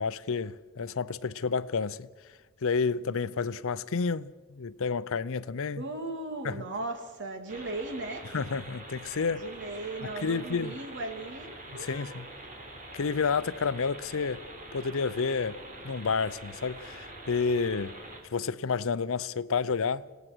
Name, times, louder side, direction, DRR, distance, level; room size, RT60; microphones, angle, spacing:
voice 1, 0.0-2.1 2.6-5.8 6.4-6.6 8.3-9.5 10.0-10.8 11.7-12.3 12.9-14.4 14.7-17.9 18.3-20.1, left 5 dB, 65° left, 0.6 m, -30 dB
voice 2, 5.8-8.2 9.3-12.2, right 2 dB, 55° right, 2.7 m, -37 dB
sound 1, 7.5-18.2, right 2 dB, 40° right, 3.6 m, -45 dB
26.5 x 18.0 x 6.2 m
head